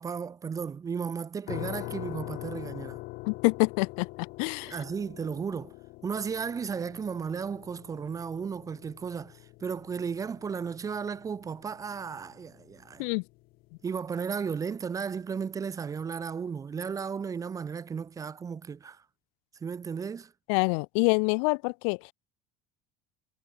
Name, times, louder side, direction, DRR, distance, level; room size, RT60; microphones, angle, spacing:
voice 1, 0.0-3.0 4.6-5.7 6.0-13.0 13.8-19.0 19.6-20.3, right 6 dB, 20° right, 1.1 m, -34 dB
sound 1, 1.5-14.3, left 22 dB, 55° left, 2.2 m, -44 dB
voice 2, 3.3-4.8 13.0-13.2 20.5-22.1, left 38 dB, 75° left, 0.8 m, -26 dB
cardioid pair, 155°, 18 cm